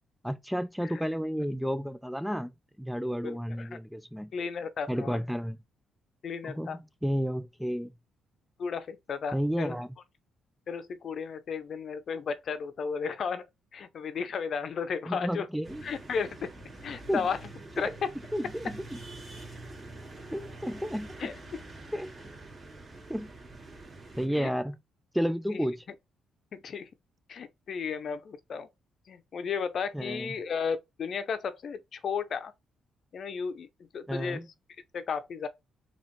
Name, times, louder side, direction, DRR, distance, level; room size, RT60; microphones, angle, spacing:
voice 1, 0.2-2.5 2.8-4.3 4.9-5.6 6.4-6.7 7.0-7.9 9.3-9.9 15.1-15.8 17.1-17.3 17.8-17.9 18.3-19.0 20.3-21.3 21.9-22.2 23.1-23.3 24.2-24.8 25.1-25.8 29.9-30.3 34.1-34.5, equal, ahead, 0.3 m, -31 dB
voice 2, 3.2-3.7 4.3-5.2 6.2-6.8 8.6-9.7 10.7-13.5 13.7-15.5 15.8-16.5 16.8-17.4 17.8-18.1 21.2-21.6 24.3-24.5 25.5-25.7 26.5-26.9 27.3-28.7 29.1-32.5 33.1-33.7 33.9-34.4 34.9-35.5, left 6 dB, 55° left, 0.6 m, -34 dB
sound 1, 15.6-24.3, right 2 dB, 25° right, 2.2 m, -46 dB
4.1 x 3.0 x 3.1 m
cardioid pair, 90°, 0 cm